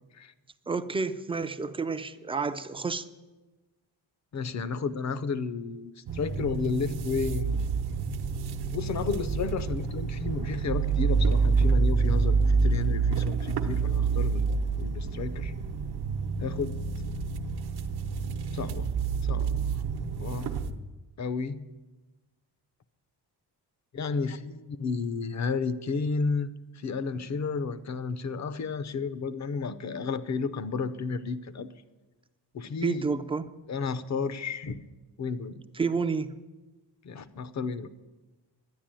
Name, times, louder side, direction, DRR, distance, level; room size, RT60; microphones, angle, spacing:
voice 1, 0.7-3.0 32.8-33.5 35.7-36.3, right 4 dB, 15° right, 10 dB, 0.4 m, -30 dB
voice 2, 4.3-7.6 8.7-15.5 16.4-16.8 18.5-18.9 19.2-19.7 20.2-20.5 21.2-21.6 23.9-31.7 32.5-33.1 33.7-34.8 35.2-35.6 37.0-37.9, left 5 dB, 40° left, 14 dB, 0.7 m, -32 dB
sound 1, 6.1-20.7, right 5 dB, 65° right, 1.0 m, -28 dB
11.5 x 10.5 x 8.9 m, 1.2 s
wide cardioid pair, 170°, 42 cm